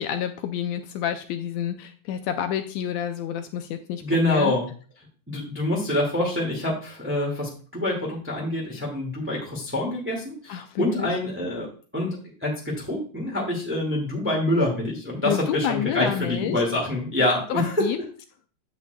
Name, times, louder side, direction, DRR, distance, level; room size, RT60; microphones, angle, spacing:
voice 1, 0.0-4.5 10.5-11.1 15.2-16.6 17.5-18.0, left 10 dB, 80° left, 7 dB, 1.7 m, -29 dB
voice 2, 4.0-4.7 5.3-11.7 11.9-12.2 12.4-17.8, left 1 dB, 5° right, -2 dB, 1.3 m, -26 dB
8.8 x 8.4 x 2.3 m, 0.39 s
omnidirectional pair, 3.4 m